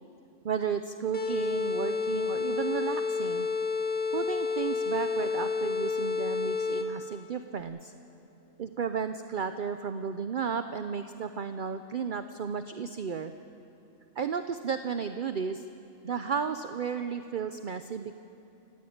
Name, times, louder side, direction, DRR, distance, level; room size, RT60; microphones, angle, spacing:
voice 1, 0.4-3.5 4.1-7.9 8.6-13.3 14.2-15.6 16.0-18.1, right 6 dB, 50° right, 9 dB, 0.7 m, -33 dB
sound 1, 1.1-7.1, left 4 dB, 5° left, 1.8 m, -30 dB
27.0 x 15.0 x 8.7 m, 2.9 s
omnidirectional pair, 1.4 m